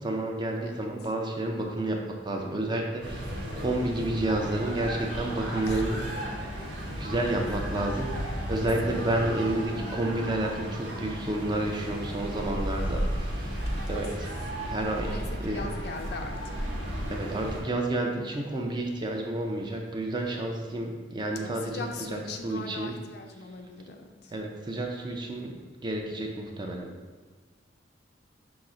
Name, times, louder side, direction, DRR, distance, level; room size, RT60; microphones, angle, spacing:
voice 1, 0.0-6.5 6.9-8.1 8.5-13.6 13.9-14.3 14.6-15.7 17.1-22.9 24.3-26.9, right 1 dB, 25° right, 1 dB, 0.4 m, -30 dB
sound 1, 3.0-17.6, equal, 85° right, 1.2 m, -34 dB
voice 2, 8.6-9.0 12.8-13.6 15.1-16.8 21.4-24.3, left 3 dB, 60° left, 4 dB, 0.4 m, -40 dB
5.8 x 2.1 x 3.7 m, 1.4 s
head